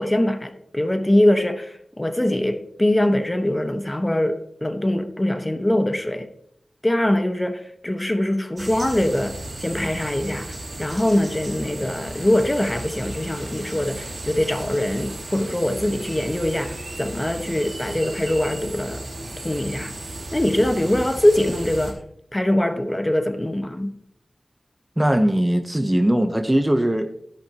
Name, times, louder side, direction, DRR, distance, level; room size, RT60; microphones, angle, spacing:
voice 1, 0.0-6.3 6.8-19.0 19.4-19.9 20.3-22.0 22.3-23.9, left 1 dB, 25° left, 1.3 m, -22 dB
sound 1, 8.6-21.9, right 1 dB, 75° right, 3.5 m, -35 dB
voice 2, 25.0-27.1, right 1 dB, 15° right, 1.0 m, -20 dB
12.5 x 11.0 x 3.0 m
wide cardioid pair, 50°, 0 cm